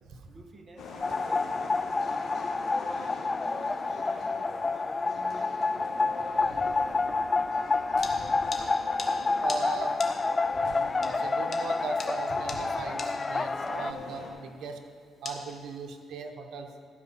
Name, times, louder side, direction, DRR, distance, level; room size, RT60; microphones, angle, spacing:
voice 1, 0.3-5.5, right 3 dB, 35° right, 3 dB, 1.5 m, -51 dB
sound 1, 0.8-14.3, left 2 dB, 70° left, 2.1 m, -44 dB
sound 2, 1.0-13.9, left 3 dB, 25° left, 0.3 m, -29 dB
sound 3, 3.5-16.1, left 3 dB, 40° left, 1.4 m, -46 dB
voice 2, 9.4-10.0 10.5-14.8 15.2-16.7, right 4 dB, 75° right, 4 dB, 1.2 m, -38 dB
14.5 x 4.9 x 7.5 m, 2.1 s
cardioid pair, 90°, 0 cm